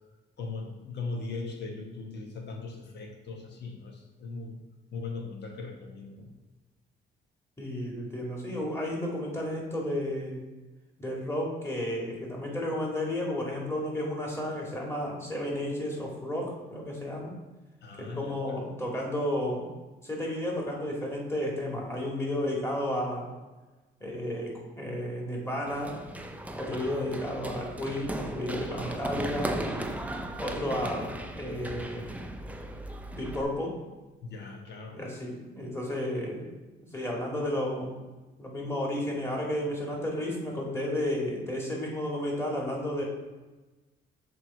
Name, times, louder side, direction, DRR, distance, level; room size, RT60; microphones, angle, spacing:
voice 1, 0.4-4.6 4.9-6.3 17.8-18.6 34.2-35.0, left 3 dB, 60° left, 2 dB, 1.2 m, -39 dB
voice 2, 7.6-10.4 11.0-17.3 18.0-19.7 20.0-23.3 24.0-26.0 26.6-30.0 30.4-32.0 33.1-33.8 34.9-36.5 36.9-38.0 38.4-43.0, left 1 dB, 15° left, -2 dB, 1.8 m, -32 dB
Run, 25.7-33.4, right 1 dB, 5° right, 0.5 m, -37 dB
6.7 x 3.3 x 4.4 m, 1.2 s
cardioid pair, 90°, 20 cm